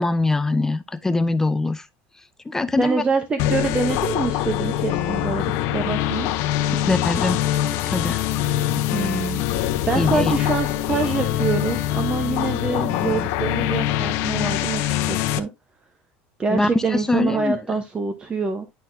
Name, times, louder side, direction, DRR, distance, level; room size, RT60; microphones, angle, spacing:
voice 1, 0.0-1.9 2.5-3.0 6.7-7.4 7.9-8.2 10.0-10.4 16.5-17.6, left 2 dB, 10° left, 0.5 m, -23 dB
voice 2, 2.8-6.3 8.9-9.4 9.9-15.5 16.4-18.7, right 4 dB, 20° right, 0.9 m, -25 dB
sound 1, 3.4-15.4, left 12 dB, 65° left, 0.8 m, -23 dB
10.5 x 4.2 x 2.6 m
supercardioid pair, 130°, 5 cm